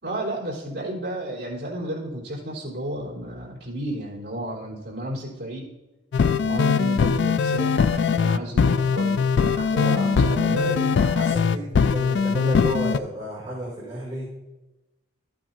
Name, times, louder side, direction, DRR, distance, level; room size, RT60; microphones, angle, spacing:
voice 1, 0.0-5.7 6.4-10.8, right 1 dB, 55° right, -5 dB, 3.6 m, -32 dB
sound 1, 6.1-13.0, left 5 dB, 55° left, 0.3 m, -21 dB
voice 2, 9.7-14.3, right 1 dB, 20° right, -8 dB, 2.7 m, -32 dB
13.5 x 8.9 x 2.7 m, 1.1 s
head